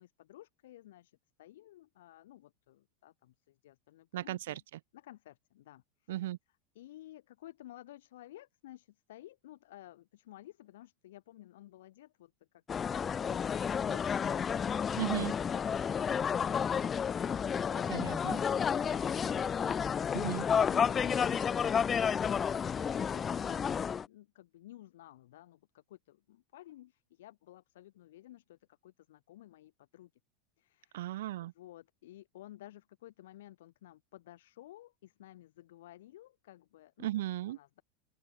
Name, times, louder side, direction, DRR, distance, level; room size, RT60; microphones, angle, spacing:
voice 1, 0.0-4.6 4.9-6.1 6.7-15.0 20.6-30.1 30.6-31.1 31.4-37.1 37.5-37.8, left 14 dB, 80° left, 7.7 m, -54 dB
voice 2, 4.1-4.6 6.1-6.4 15.0-15.3 17.9-18.4 20.1-20.4 30.9-31.5 37.0-37.6, right 14 dB, 80° right, 2.0 m, -36 dB
sound 1, 12.7-24.1, left 7 dB, 20° left, 0.5 m, -31 dB
open air
supercardioid pair, 140°, 0 cm